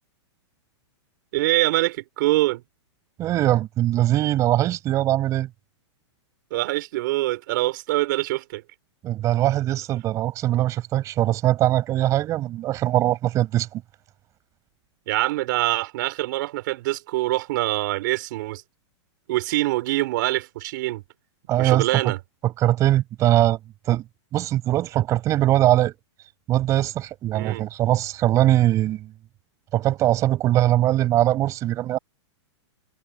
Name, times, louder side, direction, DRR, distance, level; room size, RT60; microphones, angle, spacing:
voice 1, 1.3-2.6 6.5-8.6 15.1-18.6 19.3-21.0 21.6-22.2 27.3-27.6, right 18 dB, 45° right, 5.4 m, -24 dB
voice 2, 3.2-5.5 9.0-13.8 21.5-21.9 22.4-23.6 23.9-24.0 24.3-25.9 26.5-29.1 29.7-32.0, right 14 dB, 20° right, 6.0 m, -21 dB
supercardioid pair, 170°, 15 cm